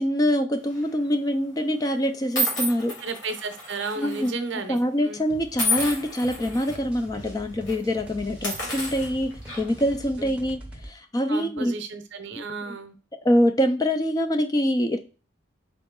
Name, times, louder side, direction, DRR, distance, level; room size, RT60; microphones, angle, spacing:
voice 1, 0.0-2.9 4.0-4.3 4.7-11.7 13.2-15.0, equal, 20° left, 6 dB, 0.3 m, -24 dB
sound 1, 0.7-1.0 1.7-1.8 2.4-4.3 4.6-4.8 5.6-6.7 7.2-7.3 7.6-7.8 8.3-9.9, equal, 75° left, 2.2 m, -30 dB
voice 2, 3.0-5.2 10.2-10.3 11.3-12.9, right 3 dB, 65° right, 8 dB, 0.7 m, -33 dB
sound 2, 5.3-10.9, right 1 dB, 5° right, 0.7 m, -43 dB
3.9 x 2.9 x 3.6 m, 0.35 s
head